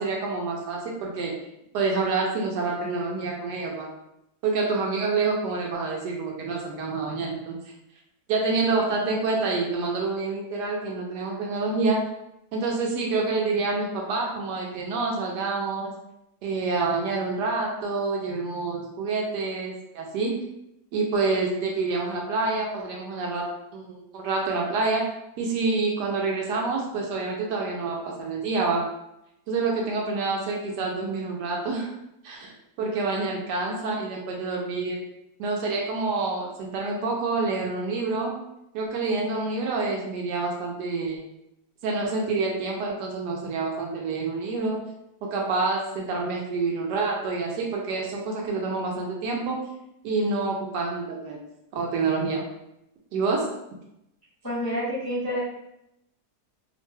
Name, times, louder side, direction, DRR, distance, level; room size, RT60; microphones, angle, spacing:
voice 1, 0.0-1.4 1.7-3.9 4.4-7.6 8.3-12.0 12.5-15.9 16.4-20.3 20.9-23.5 23.7-25.1 25.4-28.8 29.5-31.9 32.2-32.5 32.8-35.0 35.4-38.3 38.7-41.2 41.8-44.8 45.2-49.6 50.0-51.4 51.7-52.4 53.1-53.4, right 3 dB, 80° right, -1 dB, 1.2 m, -27 dB
voice 2, 54.4-55.4, equal, 20° left, -10 dB, 0.8 m, -28 dB
3.1 x 2.1 x 3.2 m, 0.83 s
omnidirectional pair, 1.8 m